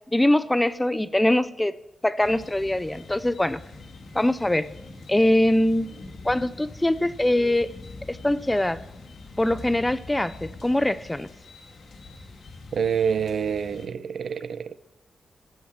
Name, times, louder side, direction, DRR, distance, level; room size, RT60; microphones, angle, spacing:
voice 1, 0.1-1.7 2.0-3.6 4.1-4.7 5.1-5.9 6.2-7.7 8.1-8.8 9.4-11.3, left 1 dB, 10° left, 0.4 m, -22 dB
sound 1, 2.2-13.9, left 3 dB, 65° left, 2.3 m, -44 dB
voice 2, 12.7-14.7, right 7 dB, 60° right, 0.7 m, -27 dB
14.5 x 9.2 x 5.8 m
wide cardioid pair, 170°, 0 cm